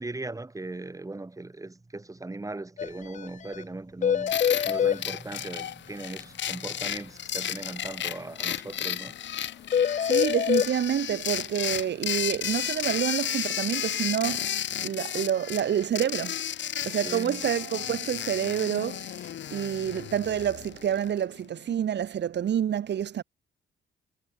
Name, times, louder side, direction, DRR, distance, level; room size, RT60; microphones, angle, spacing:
voice 1, 0.0-9.1 9.5-9.6 17.0-17.4, right 2 dB, 15° right, 6.3 m, -39 dB
sound 1, 2.8-2.9 3.1-3.3 3.5-3.6 4.0-5.0 9.7-10.7, left 8 dB, 40° left, 0.6 m, -24 dB
sound 2, 4.3-21.2, left 10 dB, 65° left, 4.6 m, -33 dB
voice 2, 10.0-16.4 16.9-23.2, right 9 dB, 60° right, 3.6 m, -28 dB
cardioid pair, 90°, 20 cm